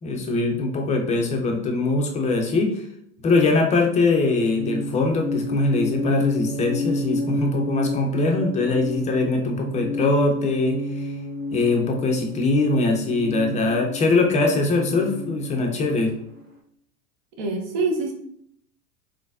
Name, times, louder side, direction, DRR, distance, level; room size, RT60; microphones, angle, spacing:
voice 1, 0.0-2.8 3.2-11.1 11.5-16.1, left 3 dB, 15° left, 2 dB, 0.5 m, -22 dB
sound 1, 4.4-16.4, left 1 dB, 20° right, 1.0 m, -30 dB
voice 2, 17.4-18.1, right 3 dB, 50° right, 1 dB, 1.0 m, -25 dB
3.8 x 3.2 x 2.5 m, 0.69 s
figure-of-eight pair, 85°, 47 cm